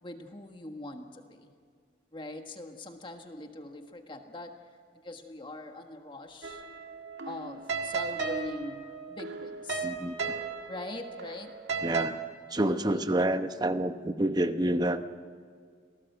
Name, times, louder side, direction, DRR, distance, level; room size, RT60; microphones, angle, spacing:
voice 1, 0.0-1.5 2.1-4.6 5.0-6.6 7.2-8.8 9.1-9.9 10.7-11.5 12.6-13.0, left 2 dB, 30° left, 5 dB, 1.5 m, -42 dB
sound 1, 6.4-12.1, right 4 dB, 75° right, 1.9 m, -35 dB
voice 2, 9.8-10.2 11.8-12.2 12.5-15.2, right 1 dB, 20° right, 10 dB, 0.9 m, -28 dB
26.5 x 18.0 x 8.0 m, 2.1 s
head